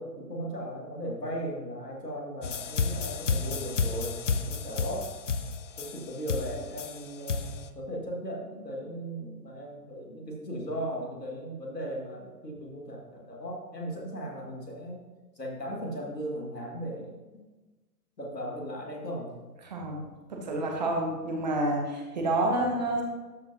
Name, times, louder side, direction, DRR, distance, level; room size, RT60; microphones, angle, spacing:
voice 1, 0.0-5.1 5.8-15.0 15.4-17.1 18.2-19.3, equal, 80° left, -2 dB, 2.4 m, -37 dB
sound 1, 2.4-7.6, left 5 dB, 50° left, 0.5 m, -31 dB
voice 2, 19.6-20.0 20.3-23.0, right 2 dB, 25° right, 1 dB, 1.0 m, -28 dB
12.5 x 5.0 x 2.9 m, 1.2 s
figure-of-eight pair, 130°, 49 cm